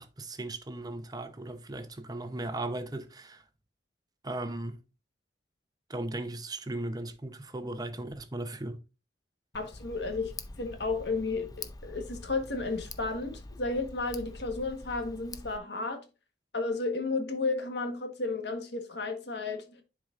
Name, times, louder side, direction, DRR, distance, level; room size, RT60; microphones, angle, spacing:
voice 1, 0.0-3.4 4.2-4.8 5.9-8.8, right 2 dB, 25° right, 0.8 m, -37 dB
voice 2, 9.5-10.3 10.6-16.0 16.5-19.8, left 3 dB, 70° left, 1.5 m, -33 dB
Tick, 9.5-15.6, left 3 dB, 20° left, 0.5 m, -45 dB
10.5 x 4.8 x 2.6 m
head